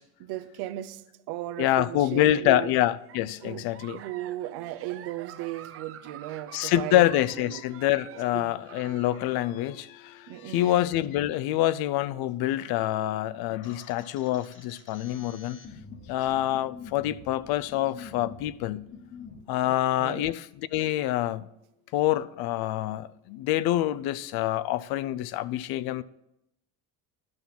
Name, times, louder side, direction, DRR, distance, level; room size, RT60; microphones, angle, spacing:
voice 1, 0.2-2.7 3.4-3.7 3.9-7.0 7.4-7.6 8.3-8.6 10.3-10.9 19.6-20.3, right 14 dB, 70° right, 0.7 m, -36 dB
voice 2, 1.6-4.0 6.5-15.6 16.1-18.9 19.5-21.4 21.9-26.0, left 14 dB, 65° left, 0.5 m, -26 dB
Giggle, 2.6-9.3, right 10 dB, 35° right, 0.5 m, -47 dB
sound 1, 13.6-19.4, left 5 dB, 30° left, 1.2 m, -47 dB
10.5 x 5.9 x 5.5 m
cardioid pair, 130°, 40 cm